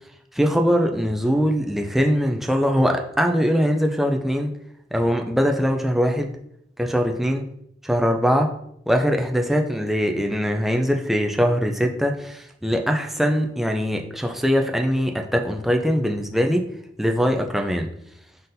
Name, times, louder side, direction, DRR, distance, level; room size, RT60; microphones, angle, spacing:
voice 1, 0.3-4.5 4.9-6.3 6.8-7.4 7.8-8.5 8.9-16.7 17.0-17.9, equal, ahead, 3 dB, 0.3 m, -22 dB
4.0 x 3.8 x 2.6 m, 0.73 s
head